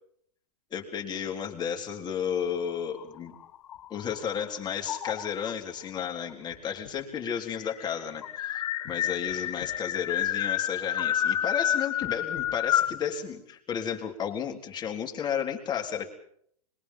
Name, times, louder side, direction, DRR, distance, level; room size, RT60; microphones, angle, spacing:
voice 1, 0.7-3.4 3.9-16.1, left 8 dB, 20° left, 2 dB, 3.7 m, -33 dB
sound 1, 2.9-4.3 4.9-5.5 6.5-6.6 6.8-6.9 7.3-13.0, left 10 dB, 65° left, 1.9 m, -29 dB
26.0 x 22.5 x 5.7 m, 0.67 s
hypercardioid pair, 120°, 19 cm